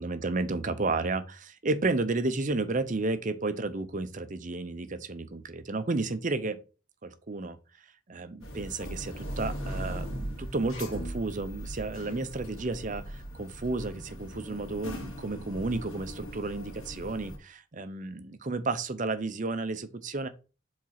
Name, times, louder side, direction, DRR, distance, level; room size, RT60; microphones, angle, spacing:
voice 1, 0.0-6.6 7.0-7.6 8.1-20.3, right 3 dB, 35° right, 0.6 m, -32 dB
sound 1, 8.4-17.4, equal, 80° left, 2.2 m, -39 dB
5.1 x 4.1 x 5.7 m
head